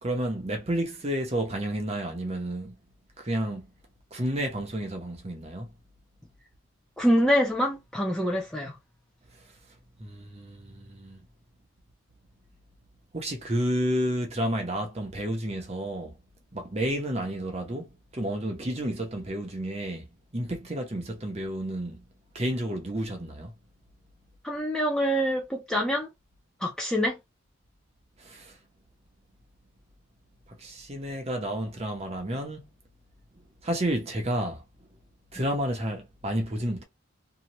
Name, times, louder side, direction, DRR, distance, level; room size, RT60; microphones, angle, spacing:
voice 1, 0.0-2.8 3.2-3.7 4.1-5.7 10.0-11.2 13.1-16.1 16.5-20.1 20.3-22.0 22.3-23.5 28.2-28.5 30.6-32.7 33.6-34.6 35.3-36.8, right 1 dB, 30° right, 0.8 m, -31 dB
voice 2, 7.0-8.8 24.4-26.1 26.6-27.2, equal, 5° left, 0.6 m, -25 dB
2.8 x 2.3 x 3.0 m
head